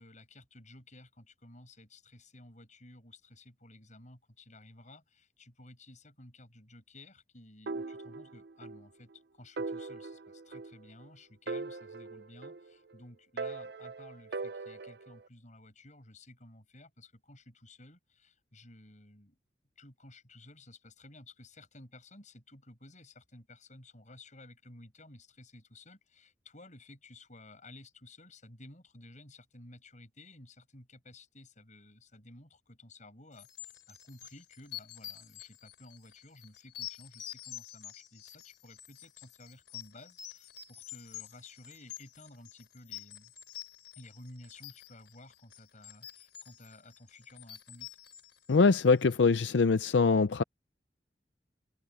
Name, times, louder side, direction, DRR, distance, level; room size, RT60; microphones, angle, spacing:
voice 1, 0.0-19.4 19.8-43.3 44.0-47.9, left 2 dB, 45° left, 7.2 m, -54 dB
sound 1, 7.7-8.8 9.1-9.2 9.6-11.1 11.5-12.9 13.4-15.2, right 3 dB, 65° right, 0.6 m, -40 dB
sound 2, 33.4-49.2, left 13 dB, 70° left, 4.2 m, -48 dB
voice 2, 48.5-50.4, left 4 dB, 85° left, 0.5 m, -23 dB
head